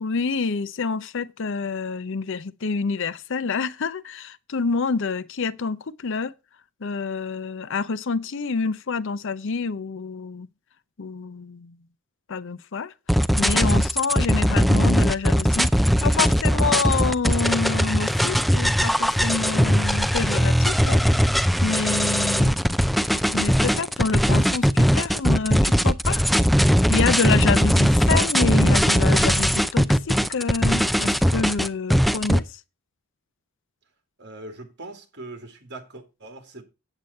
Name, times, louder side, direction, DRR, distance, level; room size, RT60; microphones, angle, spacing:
voice 1, 0.0-6.3 6.8-10.5 11.0-11.7 12.3-12.9 13.4-21.0 21.6-22.6 23.3-26.2 26.9-32.4, left 4 dB, 60° left, 0.6 m, -27 dB
sound 1, 13.1-32.4, equal, ahead, 0.5 m, -20 dB
voice 2, 34.2-36.6, right 2 dB, 55° right, 2.6 m, -41 dB
8.5 x 8.1 x 4.3 m
head